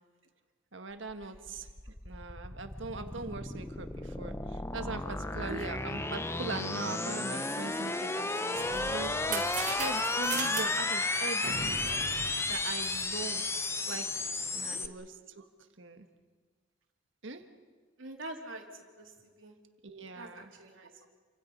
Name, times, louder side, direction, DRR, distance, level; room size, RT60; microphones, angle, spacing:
voice 1, 0.7-11.8 12.5-14.2 14.5-15.5 15.8-16.1 17.2-17.4 19.8-20.5, right 3 dB, 75° right, 7 dB, 1.6 m, -41 dB
sound 1, 1.1-14.9, left 2 dB, 15° left, 0.7 m, -33 dB
sound 2, 8.2-13.3, right 4 dB, 40° right, 4.0 m, -39 dB
voice 2, 18.0-18.6 19.0-19.5 20.1-20.9, right 1 dB, 90° right, 2 dB, 3.2 m, -44 dB
29.0 x 25.5 x 5.4 m, 1.5 s
head